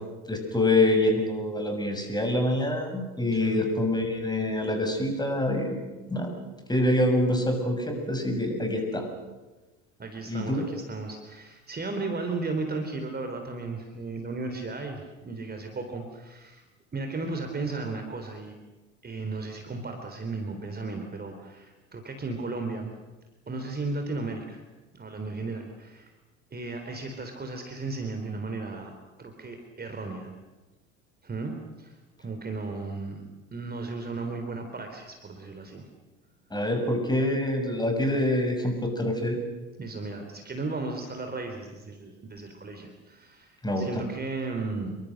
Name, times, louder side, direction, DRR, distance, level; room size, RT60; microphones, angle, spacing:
voice 1, 0.3-5.8 6.1-6.3 6.7-9.1 10.3-10.7 36.5-39.4 43.6-44.0, left 1 dB, 10° left, 5 dB, 6.6 m, -26 dB
voice 2, 3.3-3.6 10.0-16.6 16.9-18.6 19.0-22.9 23.5-24.6 24.9-26.1 26.5-28.9 29.2-30.3 31.2-32.0 32.2-33.2 33.5-35.9 39.8-45.0, right 3 dB, 25° right, 5 dB, 3.8 m, -35 dB
27.5 x 23.5 x 6.6 m, 1.2 s
figure-of-eight pair, 65°, 39 cm